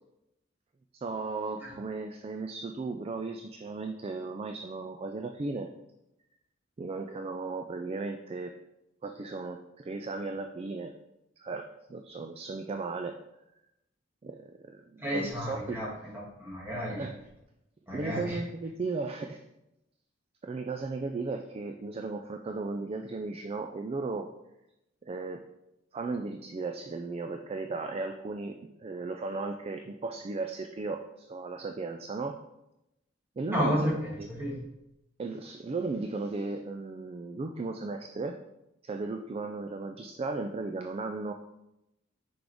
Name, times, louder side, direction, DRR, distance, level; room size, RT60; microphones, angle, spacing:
voice 1, 1.0-5.7 6.8-8.5 9.0-10.9 11.4-13.2 14.2-15.8 17.0-17.1 17.9-19.4 20.4-24.3 25.0-25.4 25.9-32.4 33.4-33.9 34.2-34.3 35.2-38.4 38.8-41.3, right 3 dB, 30° right, 5 dB, 0.3 m, -36 dB
voice 2, 15.0-15.9 16.1-17.1 17.9-18.4 33.5-34.6, equal, 10° right, -6 dB, 1.9 m, -32 dB
6.0 x 5.0 x 3.5 m, 0.88 s
head